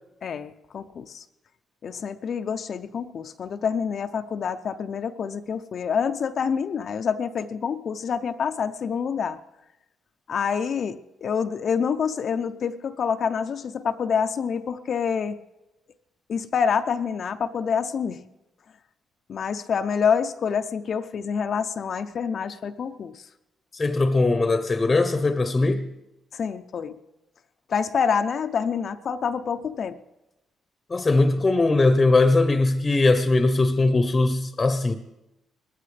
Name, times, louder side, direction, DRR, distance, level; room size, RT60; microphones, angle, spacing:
voice 1, 0.2-1.2 1.8-9.4 10.3-15.4 16.3-18.2 19.3-23.2 26.3-27.0 27.7-30.0, left 6 dB, 55° left, 0.5 m, -27 dB
voice 2, 23.7-25.9 30.9-34.9, left 2 dB, 25° left, 0.8 m, -20 dB
20.0 x 14.5 x 3.3 m
cardioid pair, 90°, 0 cm